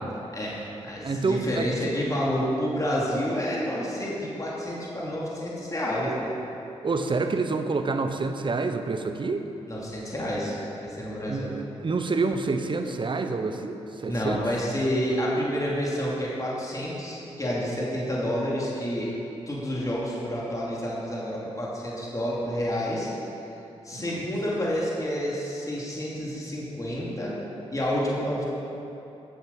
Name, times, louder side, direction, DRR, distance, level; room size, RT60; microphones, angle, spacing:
voice 1, 0.3-6.3 9.7-11.5 14.1-19.1 19.5-23.1 23.8-27.3 27.7-28.4, equal, 30° left, -5 dB, 2.7 m, -29 dB
voice 2, 1.0-1.7 6.8-9.4 11.3-14.5 23.9-24.2, right 3 dB, 40° right, 7 dB, 0.9 m, -28 dB
11.0 x 7.3 x 5.4 m, 2.9 s
supercardioid pair, 50°, 12 cm